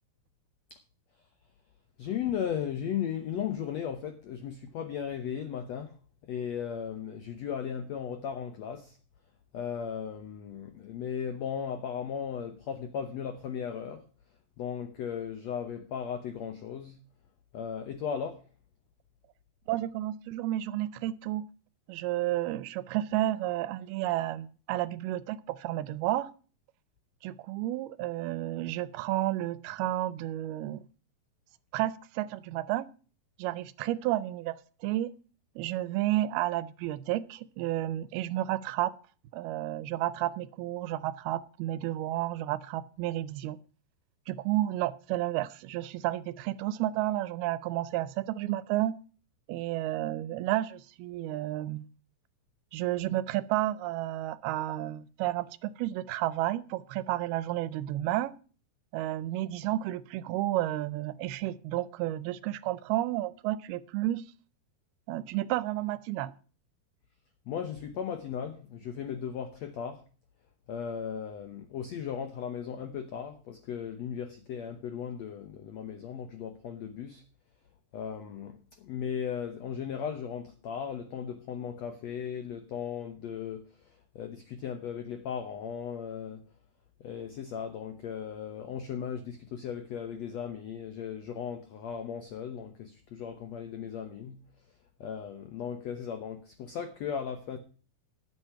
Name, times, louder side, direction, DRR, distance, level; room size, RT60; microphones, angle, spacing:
voice 1, 2.0-5.9 6.3-9.0 9.5-14.0 14.6-17.0 17.5-18.4 67.5-70.0 70.7-77.2 77.9-83.7 84.1-86.5 87.0-94.4 95.0-97.6, left 8 dB, 85° left, 1.5 m, -36 dB
voice 2, 19.7-21.5 21.9-26.3 27.2-30.8 31.7-32.9 33.4-35.1 35.6-38.9 39.3-43.6 44.3-48.9 49.5-51.9 52.7-58.3 58.9-64.2 65.1-66.3, right 14 dB, 80° right, 2.5 m, -31 dB
12.0 x 7.9 x 5.7 m
omnidirectional pair, 4.5 m